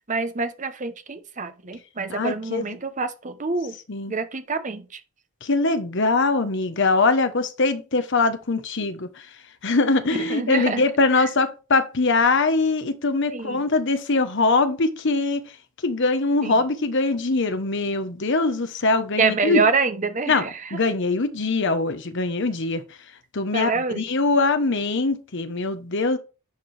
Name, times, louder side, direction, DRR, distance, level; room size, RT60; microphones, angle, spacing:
voice 1, 0.1-3.7 4.1-5.0 10.1-10.8 11.2-11.3 13.3-13.6 16.4-16.6 19.2-20.8 23.5-24.1, right 4 dB, 35° right, 0.9 m, -26 dB
voice 2, 2.1-2.8 3.9-4.1 5.4-9.3 9.6-15.5 15.8-19.6 20.3-20.4 20.7-22.8 23.3-26.2, left 3 dB, 55° left, 1.0 m, -22 dB
10.5 x 4.5 x 3.3 m
head